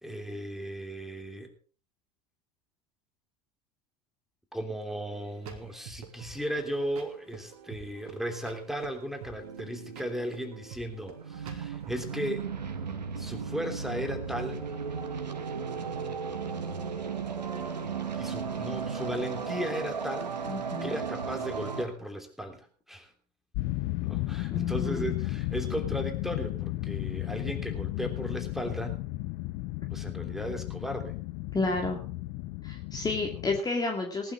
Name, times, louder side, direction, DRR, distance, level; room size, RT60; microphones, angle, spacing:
voice 1, 0.0-1.5 4.5-12.5 13.2-14.7 18.1-20.4 20.8-23.1 24.0-29.0 29.9-31.1, equal, ahead, 4 dB, 3.1 m, -36 dB
sound 1, 5.1-12.1, right 6 dB, 65° right, 2.9 m, -47 dB
sound 2, 11.1-21.8, right 5 dB, 85° right, 1.7 m, -35 dB
voice 2, 20.4-21.0 24.5-25.2 31.5-32.0 32.6-34.3, left 3 dB, 20° left, 3 dB, 2.3 m, -31 dB
sound 3, 23.5-33.6, left 18 dB, 50° left, 0.8 m, -34 dB
19.0 x 11.5 x 3.8 m, 0.40 s
figure-of-eight pair, 80°, 21 cm